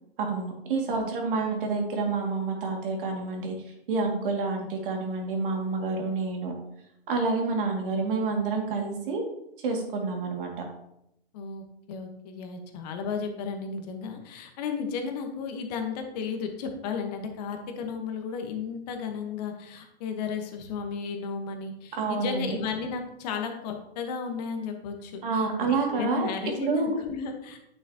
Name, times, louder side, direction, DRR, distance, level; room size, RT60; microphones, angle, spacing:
voice 1, 0.2-3.5 3.9-6.5 7.1-9.2 9.6-10.5 21.9-22.5 25.2-26.3 26.6-26.9, right 4 dB, 60° right, 1 dB, 2.2 m, -28 dB
voice 2, 11.3-27.6, left 5 dB, 40° left, 4 dB, 1.2 m, -34 dB
9.5 x 6.2 x 2.8 m, 0.80 s
hypercardioid pair, 150°, 31 cm